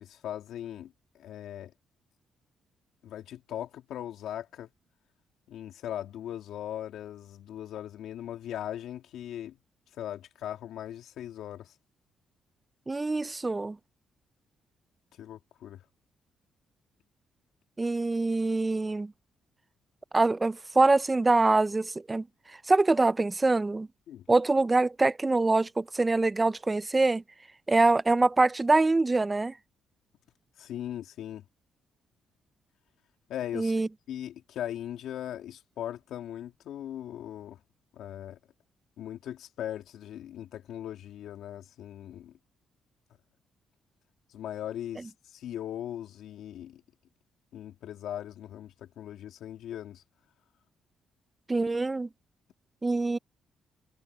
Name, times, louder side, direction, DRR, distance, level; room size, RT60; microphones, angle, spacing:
voice 1, 0.0-1.7 3.0-4.7 5.5-9.6 9.9-11.7 15.2-15.8 24.1-24.2 30.6-31.4 33.3-33.7 34.1-37.6 37.9-38.4 39.0-42.3 44.3-46.8 47.5-50.0, left 11 dB, 80° left, 2.8 m, -39 dB
voice 2, 12.9-13.8 17.8-19.1 20.1-22.3 22.7-23.9 24.3-27.2 27.7-29.5 33.5-33.9 51.5-52.1 52.8-53.2, right 3 dB, 20° right, 0.5 m, -24 dB
cardioid pair, 90°, 0 cm